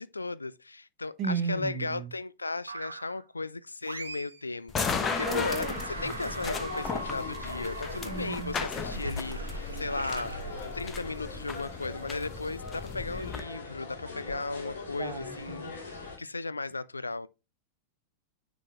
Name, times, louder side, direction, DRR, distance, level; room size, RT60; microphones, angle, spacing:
voice 1, 0.0-10.3 10.7-15.8 16.2-17.3, left 3 dB, 80° left, 0.4 m, -36 dB
voice 2, 1.2-2.1 5.2-6.3 8.0-8.6 15.0-15.7, right 5 dB, 35° right, 1.2 m, -35 dB
boing scream splash, 2.7-3.2 3.8-4.4 4.7-11.2, right 2 dB, 75° right, 1.0 m, -41 dB
sound 1, 4.7-13.4, left 5 dB, 20° left, 0.9 m, -36 dB
sound 2, 4.8-16.2, left 3 dB, 65° left, 2.4 m, -41 dB
9.6 x 4.1 x 3.0 m
figure-of-eight pair, 90°, 0 cm